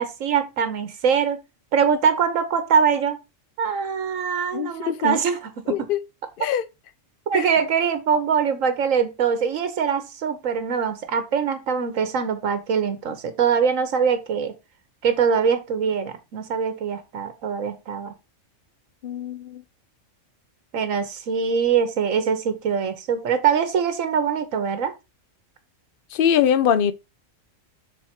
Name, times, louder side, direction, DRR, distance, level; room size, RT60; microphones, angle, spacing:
voice 1, 0.0-1.4 1.7-3.2 3.6-5.9 6.4-6.5 7.3-14.5 15.0-18.1 20.7-24.9, right 7 dB, 85° right, 1.4 m, -23 dB
voice 2, 4.5-5.2 5.7-6.0 6.4-6.7 7.3-7.5 19.0-19.6 26.1-26.9, left 9 dB, 55° left, 0.7 m, -22 dB
6.3 x 4.5 x 4.3 m
omnidirectional pair, 1.3 m